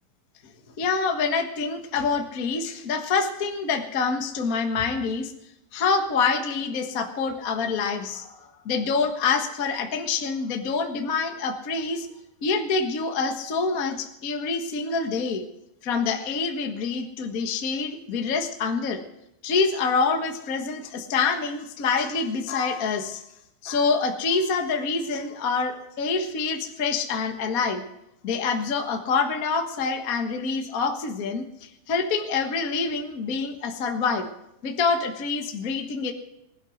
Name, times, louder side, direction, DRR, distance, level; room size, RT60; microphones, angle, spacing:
voice 1, 0.8-5.3 5.7-8.4 8.6-12.1 12.4-15.4 15.8-19.0 19.4-23.2 23.6-27.8 28.2-34.3 34.6-36.1, left 4 dB, 75° left, 5 dB, 0.8 m, -26 dB
20.0 x 11.0 x 6.4 m, 0.83 s
omnidirectional pair, 4.2 m